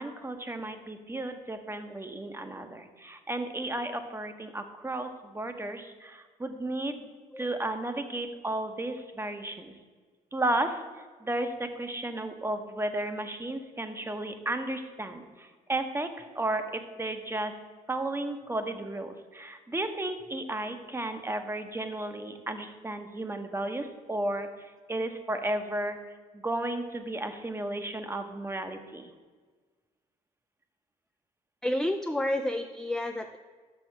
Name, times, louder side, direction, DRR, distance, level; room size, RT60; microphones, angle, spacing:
voice 1, 0.0-7.1 7.4-9.7 10.3-17.5 17.9-26.0 26.3-29.1, right 1 dB, 15° right, 8 dB, 0.9 m, -33 dB
voice 2, 31.6-33.4, left 1 dB, 5° left, 5 dB, 0.4 m, -30 dB
6.4 x 6.0 x 5.8 m, 1.5 s
cardioid pair, 80°, 15 cm